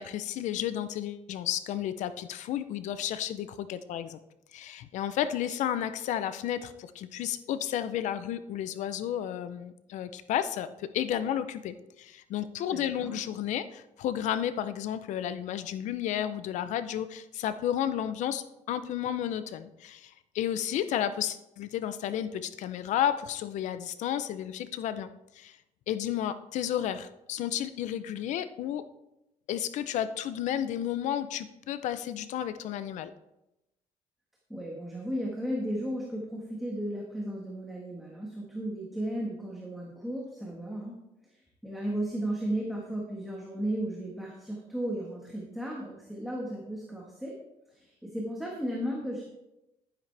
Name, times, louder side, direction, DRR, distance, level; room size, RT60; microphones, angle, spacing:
voice 1, 0.0-4.2 4.5-25.6 25.9-28.8 29.5-33.1, left 10 dB, 70° left, 13 dB, 0.6 m, -32 dB
voice 2, 12.7-13.1 34.5-41.0 41.2-47.3 47.7-49.2, right 1 dB, ahead, -3 dB, 1.5 m, -35 dB
11.0 x 10.0 x 3.4 m, 0.91 s
cardioid pair, 160°, 13 cm